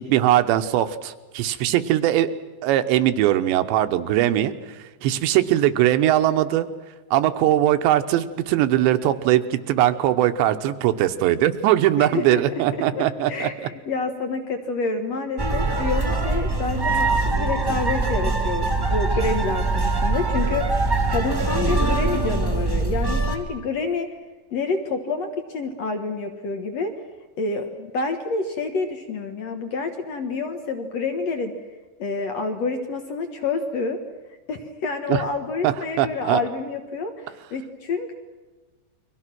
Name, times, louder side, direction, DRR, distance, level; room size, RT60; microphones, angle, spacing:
voice 1, 0.0-2.3 2.6-6.7 7.1-13.5 35.1-35.2 35.6-36.4, right 13 dB, 80° right, 9 dB, 3.2 m, -20 dB
voice 2, 12.0-12.4 12.7-13.0 13.3-20.8 21.1-24.1 24.5-26.9 27.4-31.5 32.0-34.0 34.5-38.1, left 4 dB, 65° left, 6 dB, 1.6 m, -28 dB
sound 1, 15.4-23.4, right 3 dB, 15° right, 0.9 m, -23 dB
30.0 x 23.5 x 6.1 m, 1.2 s
omnidirectional pair, 5.2 m